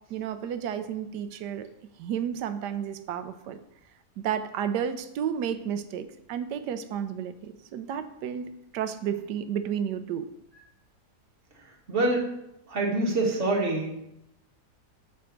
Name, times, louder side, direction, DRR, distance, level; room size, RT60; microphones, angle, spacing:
voice 1, 0.1-1.7 2.0-3.6 4.2-10.3, right 8 dB, 85° right, 10 dB, 1.2 m, -32 dB
voice 2, 11.9-12.3 12.7-14.1, right 2 dB, 45° right, -1 dB, 1.8 m, -26 dB
7.0 x 4.5 x 6.4 m, 0.82 s
omnidirectional pair, 1.8 m